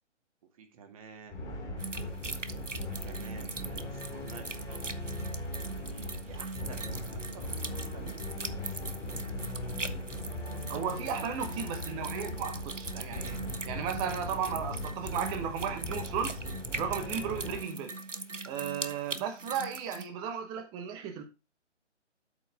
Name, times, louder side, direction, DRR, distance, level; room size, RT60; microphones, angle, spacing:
voice 1, 0.6-2.0 3.0-4.8 5.7-8.8 9.6-11.2, right 6 dB, 30° right, 2.0 m, -51 dB
sound 1, 1.3-17.6, left 1 dB, 10° left, 2.3 m, -39 dB
sound 2, 1.8-20.1, right 3 dB, 90° right, 1.2 m, -41 dB
voice 2, 10.7-16.4 16.8-17.9 18.4-21.2, right 7 dB, 10° right, 1.1 m, -35 dB
8.2 x 7.7 x 3.5 m
figure-of-eight pair, 140°, 36 cm